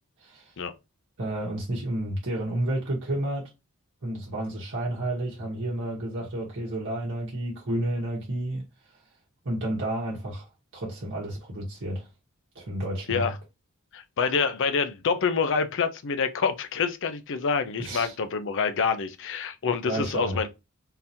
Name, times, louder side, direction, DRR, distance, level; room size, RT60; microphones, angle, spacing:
voice 1, 0.2-0.5 1.2-3.5 4.0-8.6 9.4-10.5 10.7-12.1 12.5-13.3 17.8-18.1 19.8-20.4, right 1 dB, 60° right, 1.1 m, -31 dB
voice 2, 13.9-20.5, left 5 dB, 60° left, 0.5 m, -27 dB
3.9 x 2.8 x 2.6 m
head